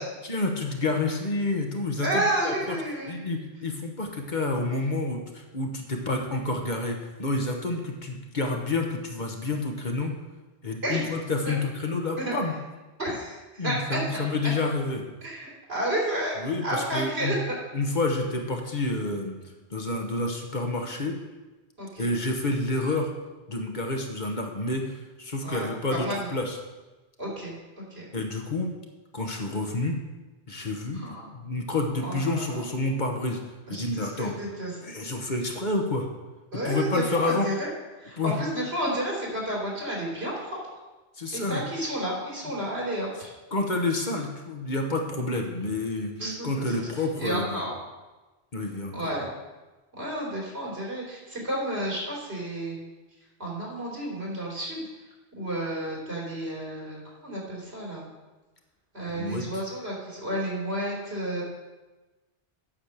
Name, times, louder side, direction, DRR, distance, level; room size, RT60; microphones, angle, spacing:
voice 1, 0.2-2.7 3.1-10.1 10.6-12.5 13.6-15.0 16.4-17.4 17.7-19.4 19.7-21.1 22.0-23.1 23.5-26.6 28.1-28.7 29.1-30.0 30.5-33.4 33.7-34.3 34.8-36.1 36.6-37.5 38.2-38.3 41.2-41.6 43.5-46.1 46.4-47.6 48.5-48.9 59.1-59.4, left 2 dB, 45° left, 2 dB, 1.3 m, -29 dB
voice 2, 2.0-3.2 10.8-11.1 11.5-11.6 12.2-12.4 13.0-14.0 15.2-17.6 21.8-22.1 25.4-26.3 27.2-27.5 27.9-28.0 30.9-31.3 32.0-32.6 33.7-34.7 36.5-37.7 38.0-40.6 41.3-43.3 46.2-46.9 47.2-47.8 48.9-49.3 50.0-52.8 53.4-54.9 55.4-58.1 58.9-61.4, right 1 dB, 80° right, -4 dB, 3.6 m, -31 dB
8.8 x 6.3 x 6.7 m, 1.2 s
omnidirectional pair, 1.1 m